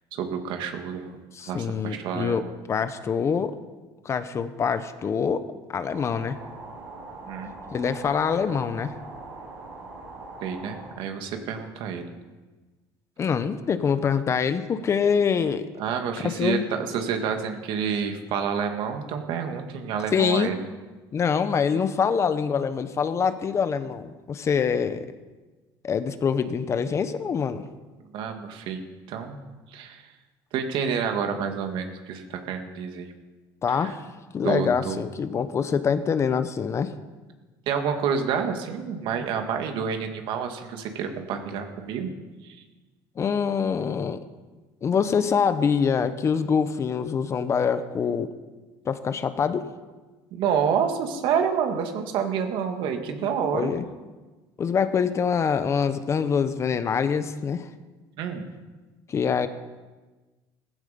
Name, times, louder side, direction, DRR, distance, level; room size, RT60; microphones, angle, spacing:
voice 1, 0.1-1.2 1.5-2.5 7.3-7.5 10.4-12.1 15.8-20.6 28.1-28.8 29.1-29.4 29.7-30.0 30.5-33.1 33.7-33.9 34.4-35.0 37.7-42.1 42.4-42.6 50.3-53.7 58.2-58.5, right 7 dB, 65° right, 5 dB, 2.2 m, -28 dB
voice 2, 1.3-3.5 4.0-5.4 5.7-6.4 7.7-8.9 13.2-15.7 16.2-16.7 20.1-20.5 21.1-25.1 25.8-27.6 33.6-34.1 34.3-36.9 43.2-44.2 44.8-48.3 48.8-49.7 53.5-53.8 54.6-57.7 59.1-59.5, left 6 dB, 30° left, 11 dB, 0.9 m, -25 dB
sound 1, 5.9-10.9, right 3 dB, 90° right, 6.8 m, -42 dB
16.0 x 15.0 x 5.3 m, 1.2 s
cardioid pair, 130°, 9 cm